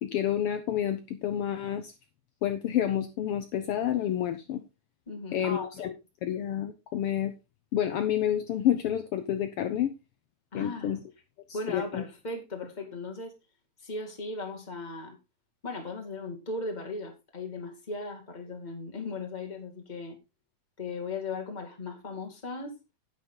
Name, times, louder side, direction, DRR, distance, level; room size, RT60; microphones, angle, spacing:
voice 1, 0.0-1.9 2.4-4.6 5.3-5.9 6.2-7.3 7.7-9.9 10.5-11.0 11.5-12.0, left 10 dB, 80° left, 8 dB, 1.3 m, -29 dB
voice 2, 5.1-5.9 10.5-10.9 11.5-13.3 13.8-15.2 15.6-20.2 20.8-22.8, left 3 dB, 15° left, 2 dB, 1.9 m, -37 dB
10.5 x 8.8 x 3.8 m, 0.26 s
omnidirectional pair, 3.6 m